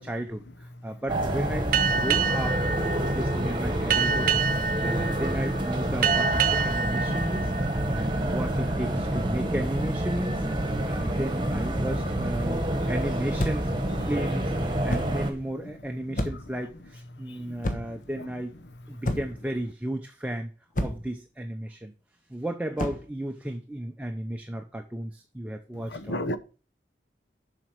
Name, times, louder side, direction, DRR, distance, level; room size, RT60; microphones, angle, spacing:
voice 1, 0.0-2.6 3.0-7.5 7.9-10.4 10.8-14.5 14.8-18.5 18.9-20.5 20.8-21.9 22.3-26.2, right 1 dB, 10° right, 0.6 m, -34 dB
sound 1, 1.1-15.3, right 1 dB, 25° right, 1.3 m, -28 dB
Boat Water vehicle, 1.7-8.8, right 6 dB, 50° right, 0.5 m, -28 dB
sound 2, 13.4-13.8 14.9-15.2 16.2-16.6 17.6-18.0 19.0-19.5 20.8-21.1 22.8-23.1, left 1 dB, 50° left, 1.1 m, -30 dB
voice 2, 25.9-26.4, left 1 dB, 80° left, 1.0 m, -33 dB
7.4 x 5.0 x 6.1 m
head